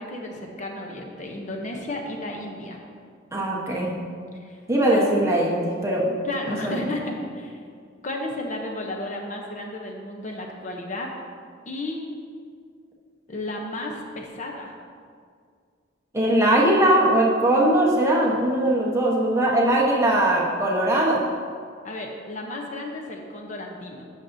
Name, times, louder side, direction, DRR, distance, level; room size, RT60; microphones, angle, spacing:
voice 1, 0.0-2.8 4.4-4.6 4.9-5.1 6.2-7.6 8.0-11.1 11.7-12.1 13.3-14.7 21.8-24.0, left 1 dB, 40° left, 1 dB, 0.7 m, -33 dB
voice 2, 3.3-3.9 4.7-6.1 6.5-6.9 16.1-21.2, right 1 dB, 15° right, -3 dB, 1.0 m, -20 dB
11.5 x 6.5 x 2.7 m, 2.1 s
head